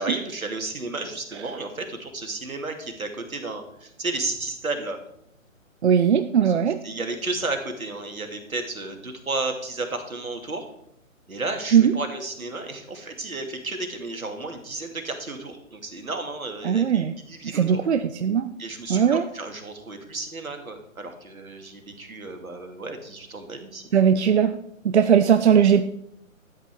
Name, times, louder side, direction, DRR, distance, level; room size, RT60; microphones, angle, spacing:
voice 1, 0.0-5.0 6.4-10.7 11.3-17.8 18.6-23.8, right 2 dB, 85° right, 5 dB, 2.6 m, -33 dB
voice 2, 5.8-6.8 11.7-11.9 16.6-17.1 17.5-18.5 18.9-19.2 23.9-24.5 24.8-25.8, right 8 dB, 55° right, 10 dB, 0.7 m, -19 dB
12.5 x 8.2 x 4.9 m, 0.74 s
figure-of-eight pair, 140°, 41 cm